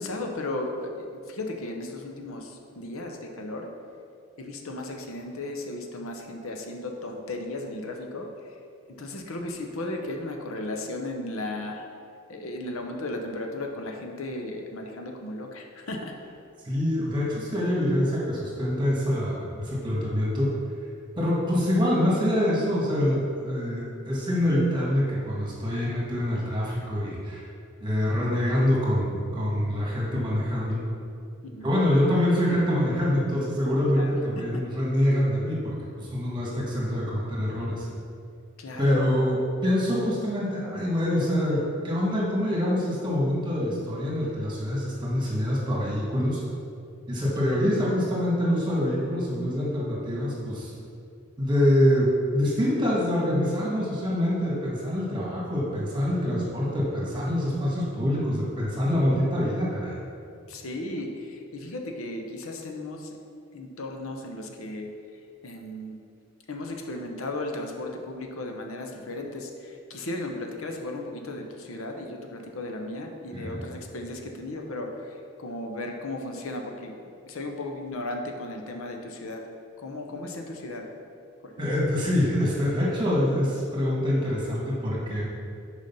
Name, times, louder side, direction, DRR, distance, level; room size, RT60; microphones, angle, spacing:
voice 1, 0.0-3.7 4.4-8.6 8.9-11.8 12.3-16.2 31.4-31.8 33.9-34.4 38.6-39.2 60.5-63.2 63.5-64.9 65.4-66.0 66.5-76.9 77.2-79.5 79.8-80.9 81.4-81.7, left 2 dB, 85° left, 3 dB, 0.8 m, -35 dB
voice 2, 16.6-20.6 21.1-27.5 27.8-30.8 31.6-37.9 38.8-46.4 47.1-50.7 51.4-60.0 73.3-73.6 81.6-85.2, equal, 20° right, -5 dB, 1.6 m, -25 dB
6.6 x 5.0 x 5.5 m, 2.4 s
head